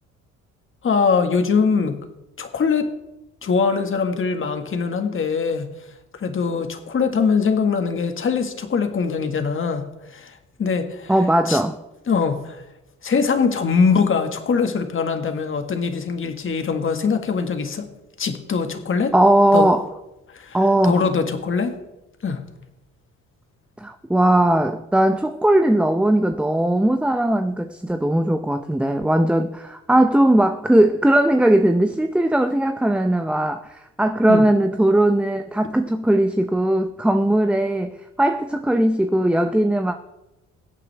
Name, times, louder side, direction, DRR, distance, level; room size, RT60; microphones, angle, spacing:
voice 1, 0.8-2.0 2.4-2.9 3.4-5.7 6.2-10.3 10.6-11.1 11.5-11.6 12.1-12.6 13.0-17.9 18.2-19.1 19.5-19.7 20.3-20.6 20.8-21.7 22.2-22.4 34.3-34.4, left 5 dB, 45° left, 1.7 m, -22 dB
voice 2, 11.1-11.8 19.1-19.9 20.5-21.0 23.8-37.9 38.2-40.0, right 1 dB, 5° right, 0.6 m, -19 dB
22.0 x 8.4 x 3.4 m
cardioid pair, 90°, 30 cm